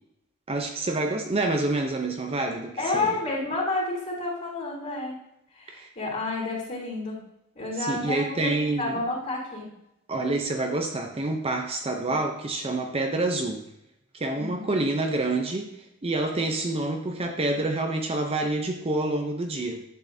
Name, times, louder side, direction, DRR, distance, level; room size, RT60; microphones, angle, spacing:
voice 1, 0.5-3.2 5.7-5.9 7.8-9.0 10.1-13.6 14.1-19.8, right 2 dB, 25° right, 3 dB, 0.6 m, -27 dB
voice 2, 2.8-5.2 5.5-7.2 7.5-8.5 8.8-9.7 14.4-14.8, left 2 dB, 35° left, -3 dB, 3.1 m, -30 dB
10.5 x 7.7 x 2.7 m, 0.86 s
head